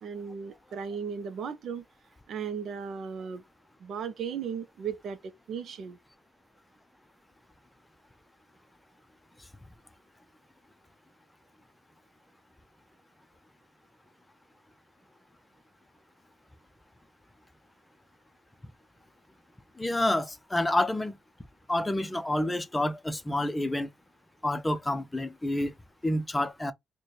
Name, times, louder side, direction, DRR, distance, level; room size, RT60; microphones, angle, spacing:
voice 1, 0.0-1.8 2.3-3.4 3.8-6.0, right 6 dB, 65° right, 0.7 m, -36 dB
voice 2, 19.8-21.2 21.7-23.9 24.4-25.7 26.0-26.7, left 1 dB, 15° left, 0.5 m, -28 dB
4.1 x 2.2 x 3.2 m
cardioid pair, 90°, 0 cm